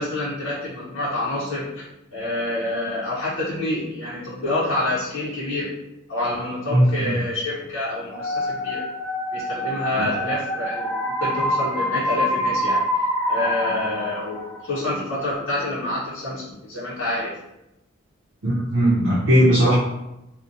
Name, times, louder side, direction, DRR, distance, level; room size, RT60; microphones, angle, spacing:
voice 1, 0.0-5.8 6.1-8.8 9.3-12.8 13.3-17.4, left 1 dB, 70° left, -9 dB, 0.7 m, -27 dB
voice 2, 6.7-7.2 10.0-10.1 18.4-19.8, equal, 75° right, -7 dB, 0.6 m, -18 dB
sound 1, 8.1-14.9, equal, 10° left, 0.7 m, -26 dB
2.6 x 2.1 x 2.4 m, 0.91 s
head